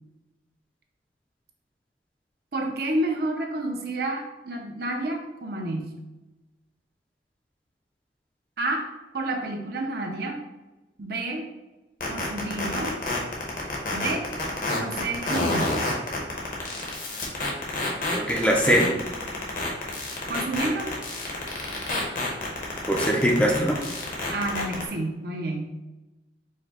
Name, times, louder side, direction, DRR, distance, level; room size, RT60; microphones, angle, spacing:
voice 1, 2.5-5.9 8.6-8.8 9.1-10.4 11.0-11.5 12.1-13.0 13.9-14.3 14.7-15.8 20.3-20.9 24.3-25.7, right 2 dB, 55° right, 2 dB, 0.6 m, -29 dB
sound 1, 12.0-24.8, left 2 dB, 50° left, 1.0 m, -28 dB
voice 2, 18.1-18.9 22.9-23.8, equal, 5° left, -1 dB, 0.5 m, -21 dB
4.9 x 2.2 x 4.2 m, 1.1 s
head